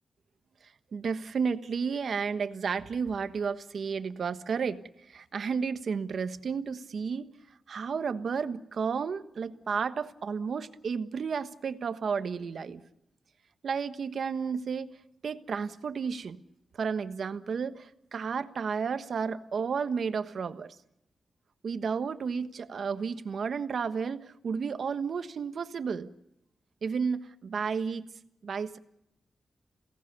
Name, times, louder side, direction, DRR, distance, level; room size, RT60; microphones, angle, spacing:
voice 1, 0.9-4.8 5.1-7.3 7.7-12.8 13.6-14.9 15.2-16.4 16.8-20.7 21.6-26.1 26.8-28.1 28.4-28.8, right 6 dB, 60° right, 10 dB, 1.3 m, -32 dB
28.0 x 18.0 x 6.9 m, 0.81 s
wide cardioid pair, 150°, 0 cm